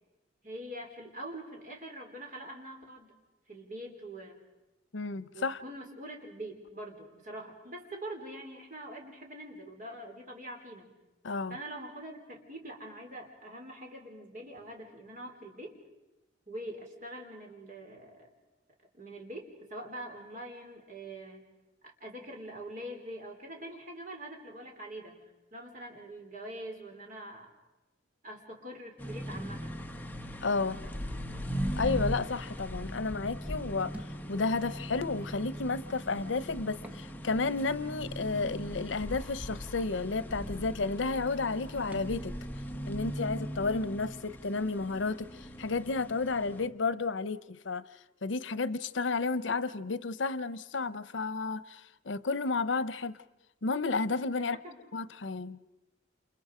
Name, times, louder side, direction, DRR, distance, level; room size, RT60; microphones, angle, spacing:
voice 1, 0.4-3.1 3.5-4.4 5.3-10.9 11.5-15.8 16.5-18.3 18.9-21.5 22.0-25.2 25.5-27.5 28.2-29.8 54.4-54.8, right 1 dB, 45° right, 4.4 m, -44 dB
voice 2, 4.9-5.6 11.2-11.6 30.4-30.8 31.8-34.0 34.3-42.4 42.9-47.9 48.2-53.1 53.6-54.6 54.9-55.6, left 3 dB, 90° left, 0.8 m, -32 dB
sound 1, 29.0-46.7, equal, 10° left, 1.2 m, -39 dB
Thump thud, 33.9-34.2 35.2-35.4 36.7-37.1 37.5-37.6 39.1-39.3 40.1-40.2 40.4-40.7 41.9-42.2, right 1 dB, 10° right, 1.3 m, -46 dB
29.0 x 29.0 x 5.0 m
head